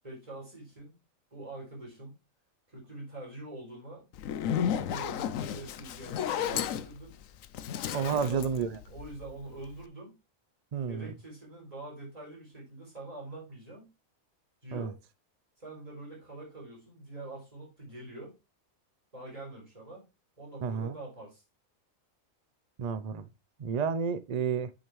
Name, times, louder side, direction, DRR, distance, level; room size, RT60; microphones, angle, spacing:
voice 1, 0.0-0.9 1.3-2.2 2.7-4.0 4.5-7.1 8.0-8.4 8.9-10.1 10.9-13.9 14.6-15.0 15.6-18.3 19.1-20.0 20.4-21.4, right 2 dB, 25° right, 4.3 m, -44 dB
Zipper (clothing), 4.1-9.4, left 9 dB, 75° left, 1.0 m, -33 dB
voice 2, 7.9-8.8 10.7-11.1 14.7-14.9 20.6-21.0 22.8-23.3 23.6-24.7, right 6 dB, 80° right, 0.3 m, -31 dB
8.6 x 6.3 x 3.1 m
omnidirectional pair, 1.4 m